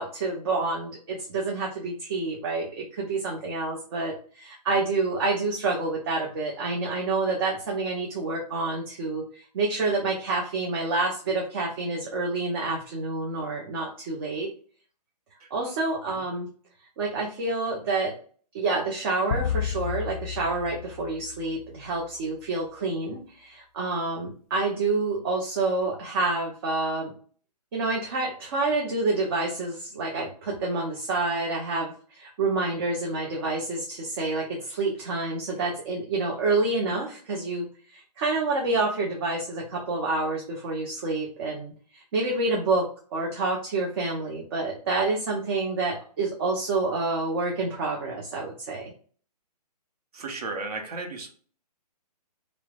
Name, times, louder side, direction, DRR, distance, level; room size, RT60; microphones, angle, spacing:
voice 1, 0.0-14.5 15.5-16.5 17.0-18.1 18.5-27.1 27.7-37.7 37.9-48.9, right 3 dB, 35° right, -1 dB, 0.6 m, -28 dB
sound 1, 19.3-21.9, left 8 dB, 55° left, 0.4 m, -32 dB
voice 2, 50.1-51.3, right 3 dB, 65° right, 2 dB, 0.8 m, -34 dB
3.0 x 2.0 x 2.3 m, 0.43 s
hypercardioid pair, 145°, 21 cm